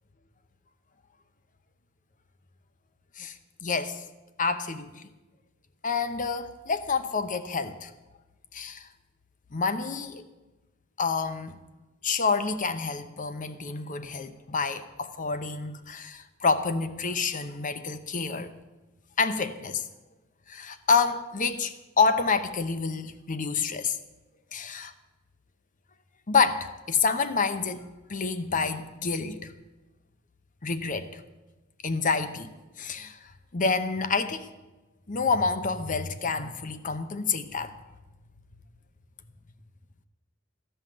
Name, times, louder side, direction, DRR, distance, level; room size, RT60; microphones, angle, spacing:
voice 1, 3.2-4.0 4.4-5.0 5.8-7.9 8.5-8.9 9.5-10.2 11.0-11.6 12.0-18.5 19.2-19.9 20.5-24.0 24.5-24.9 26.3-29.5 30.6-31.2 31.8-34.5 35.1-37.7, left 4 dB, 40° left, 0.8 m, -28 dB
14.5 x 5.7 x 8.9 m
head